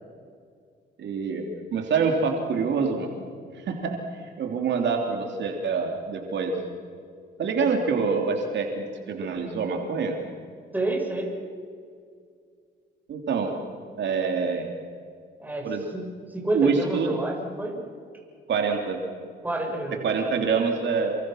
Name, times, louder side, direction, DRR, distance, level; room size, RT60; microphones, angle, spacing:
voice 1, 1.0-1.4 1.7-3.1 3.6-6.6 7.4-10.2 13.1-13.5 14.0-14.7 15.6-15.8 16.5-17.1 18.5-19.0 20.0-21.2, right 5 dB, 65° right, 2 dB, 3.2 m, -26 dB
voice 2, 10.7-11.3 15.4-16.0 16.3-17.8 19.4-20.1, right 2 dB, 10° right, 0 dB, 6.5 m, -28 dB
28.5 x 24.0 x 6.5 m, 2.2 s
cardioid pair, 90°, 20 cm